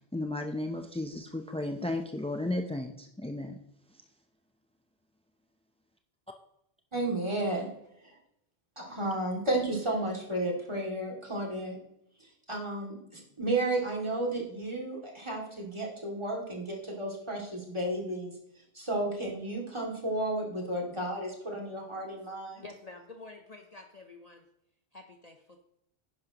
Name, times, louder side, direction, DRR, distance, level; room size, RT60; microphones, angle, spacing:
voice 1, 0.1-3.6, left 2 dB, 10° left, 5 dB, 0.3 m, -34 dB
voice 2, 6.9-8.2 8.8-11.8 12.2-22.7, right 1 dB, 25° right, -2 dB, 2.4 m, -33 dB
voice 3, 22.5-24.4 24.9-25.6, left 3 dB, 40° left, 4 dB, 0.8 m, -49 dB
11.0 x 10.5 x 2.9 m, 0.78 s
omnidirectional pair, 1.1 m